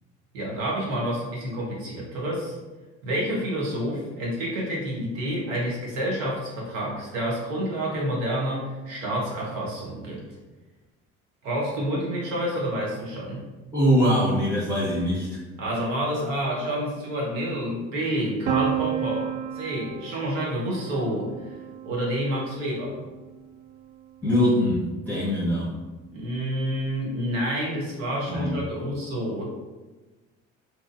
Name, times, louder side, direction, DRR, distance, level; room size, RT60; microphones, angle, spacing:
voice 1, 0.3-2.6 3.0-10.3 11.4-13.5 15.6-21.6 21.8-23.0 26.1-29.4, equal, 85° right, -3 dB, 0.8 m, -29 dB
voice 2, 13.7-15.3 24.2-25.7 28.3-28.6, equal, 5° left, -9 dB, 0.9 m, -22 dB
Piano, 18.5-24.2, right 9 dB, 65° right, 0.5 m, -33 dB
2.8 x 2.4 x 2.5 m, 1.2 s
hypercardioid pair, 55°, 37 cm